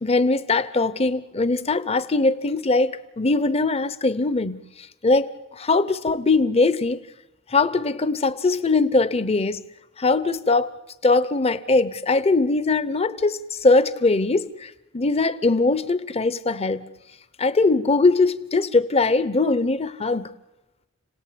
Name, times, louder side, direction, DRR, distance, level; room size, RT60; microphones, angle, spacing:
voice 1, 0.0-4.7 5.0-7.1 7.5-9.7 10.0-10.7 11.0-16.9 17.4-20.3, left 3 dB, 30° left, 0.9 m, -21 dB
30.0 x 18.0 x 8.6 m
head